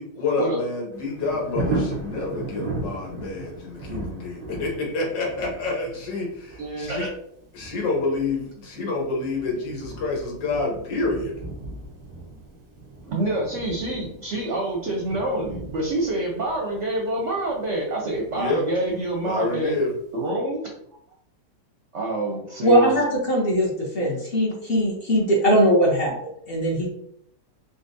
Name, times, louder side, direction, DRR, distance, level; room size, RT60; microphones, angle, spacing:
voice 1, 0.0-7.1 7.5-11.3 18.3-19.9, left 3 dB, 80° left, -2 dB, 1.9 m, -28 dB
Thunder, 0.9-19.7 20.1-20.2, right 2 dB, 80° right, 0.3 m, -37 dB
voice 2, 6.6-7.1 13.0-19.7 20.1-20.6 21.9-22.9, right 1 dB, 55° right, -1 dB, 0.8 m, -27 dB
voice 3, 22.6-26.9, equal, 45° left, -3 dB, 0.9 m, -20 dB
3.9 x 3.7 x 2.6 m, 0.74 s
omnidirectional pair, 1.9 m